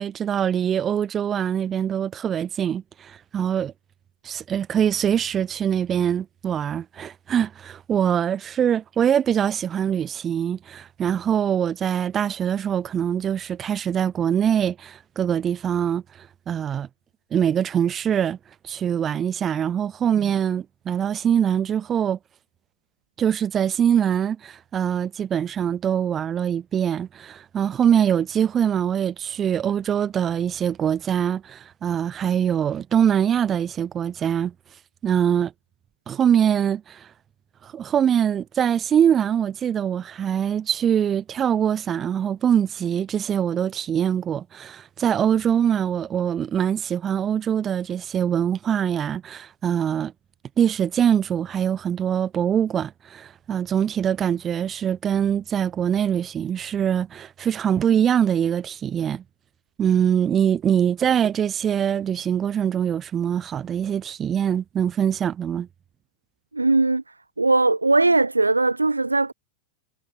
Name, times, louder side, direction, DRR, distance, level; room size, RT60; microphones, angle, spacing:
voice 1, 0.0-3.7 4.2-16.9 17.3-18.4 18.6-22.2 23.2-34.5 35.0-35.5 36.1-37.1 37.6-50.1 50.6-59.2 59.8-65.7, right 9 dB, 25° right, 0.5 m, -23 dB
voice 2, 66.5-67.0 67.4-69.3, right 3 dB, 80° right, 0.6 m, -19 dB
figure-of-eight pair, 90°, 0 cm